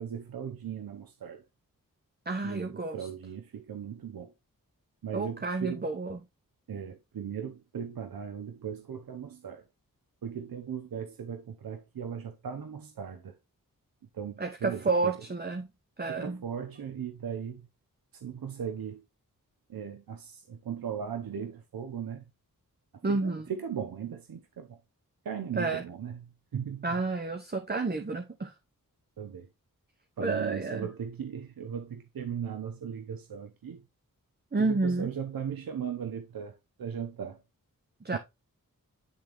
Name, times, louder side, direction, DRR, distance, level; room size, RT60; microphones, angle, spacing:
voice 1, 0.0-1.4 2.4-4.3 5.0-5.8 6.7-9.6 10.2-13.3 14.1-15.1 16.1-17.7 18.1-19.0 19.7-22.2 23.1-24.8 25.2-26.9 29.2-29.5 30.2-33.8 34.6-36.5 36.8-37.4 38.1-38.2, right 7 dB, 80° right, 0.8 m, -38 dB
voice 2, 2.3-3.1 5.1-6.2 14.4-15.7 16.0-16.4 23.0-23.5 25.6-25.8 26.8-28.5 30.2-30.9 34.5-35.1 38.0-38.2, right 3 dB, 30° right, 0.8 m, -30 dB
9.5 x 3.5 x 3.4 m
cardioid pair, 45°, 35 cm